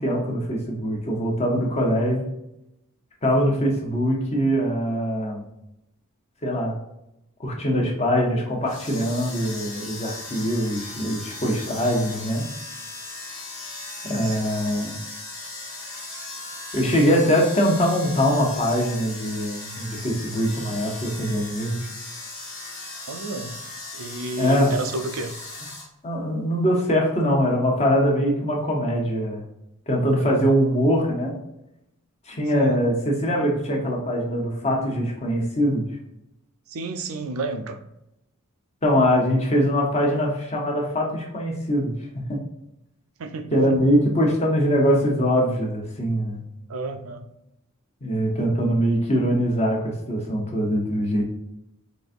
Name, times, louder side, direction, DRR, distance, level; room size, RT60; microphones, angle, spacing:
voice 1, 0.0-2.3 3.2-5.4 6.4-6.7 7.4-12.4 14.0-15.0 16.7-21.8 24.4-24.7 26.0-29.4 29.9-31.4 32.3-35.9 38.8-41.9 42.3-42.4 43.5-46.4 48.0-51.2, equal, 30° left, -1 dB, 0.8 m, -22 dB
sound 1, 8.6-25.9, left 2 dB, 65° left, 1.3 m, -37 dB
voice 2, 14.0-14.4 23.1-23.6 23.9-25.3 30.2-30.6 32.5-32.8 36.7-37.8 43.2-43.8 46.7-47.3, right 2 dB, 70° right, 8 dB, 0.5 m, -32 dB
4.0 x 3.3 x 2.5 m, 0.85 s
head